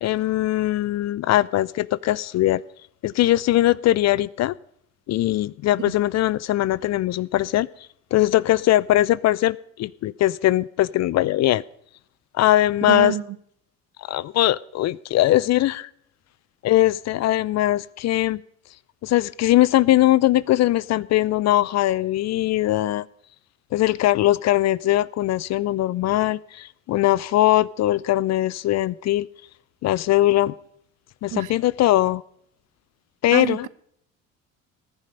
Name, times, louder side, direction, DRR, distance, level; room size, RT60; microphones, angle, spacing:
voice 1, 0.0-2.6 3.0-4.5 5.1-7.7 8.1-11.6 12.4-13.1 14.0-15.9 16.6-18.4 19.0-23.0 23.7-29.3 29.8-30.5 31.2-32.2 33.2-33.7, left 14 dB, 45° left, 22 dB, 0.5 m, -20 dB
voice 2, 12.8-13.4 31.3-31.6 33.3-33.7, right 13 dB, 50° right, 18 dB, 0.9 m, -27 dB
19.5 x 10.5 x 5.3 m, 0.69 s
hypercardioid pair, 60°, 40 cm